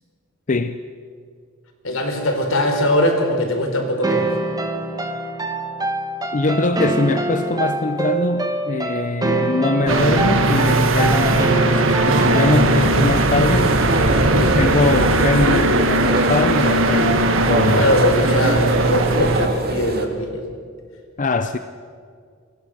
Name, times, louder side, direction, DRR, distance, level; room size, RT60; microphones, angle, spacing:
voice 1, 0.5-0.8 6.3-13.7 14.3-17.8 21.2-21.6, left 3 dB, 40° left, 0.7 m, -22 dB
voice 2, 1.8-4.3 17.8-20.4, left 1 dB, 80° left, 4.3 m, -21 dB
sound 1, 4.0-12.9, right 2 dB, 20° right, 1.8 m, -24 dB
sound 2, 9.9-19.5, right 2 dB, 70° right, 1.8 m, -18 dB
sound 3, 12.1-20.1, right 2 dB, 50° right, 2.2 m, -24 dB
26.5 x 20.5 x 6.5 m
head